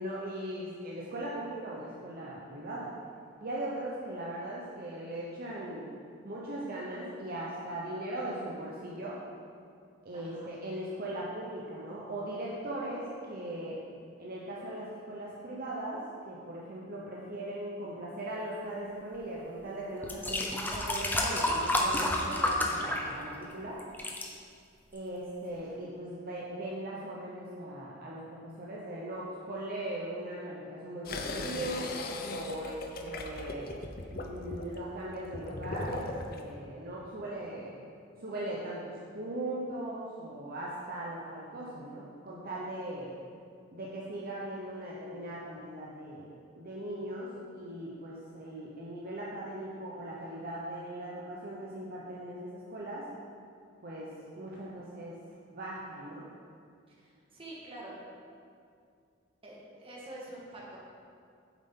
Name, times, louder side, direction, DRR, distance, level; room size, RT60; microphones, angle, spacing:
voice 1, 0.0-2.9 3.4-5.9 6.2-9.2 10.0-13.8 14.2-23.8 24.9-31.9 32.3-33.7 34.1-37.7 38.2-43.1 43.7-46.3 46.6-53.1 53.8-55.2 55.5-56.3, right 1 dB, 50° right, -5 dB, 0.9 m, -39 dB
voice 2, 10.1-10.5 56.9-58.0 59.4-60.8, right 1 dB, 30° right, -4 dB, 1.6 m, -46 dB
sound 1, 19.4-19.5 20.0-23.5 23.8-24.3 25.0-25.1, left 1 dB, 10° left, 0.7 m, -30 dB
sound 2, 31.1-36.4, left 2 dB, 50° left, 0.6 m, -38 dB
8.3 x 7.2 x 3.8 m, 2.3 s
head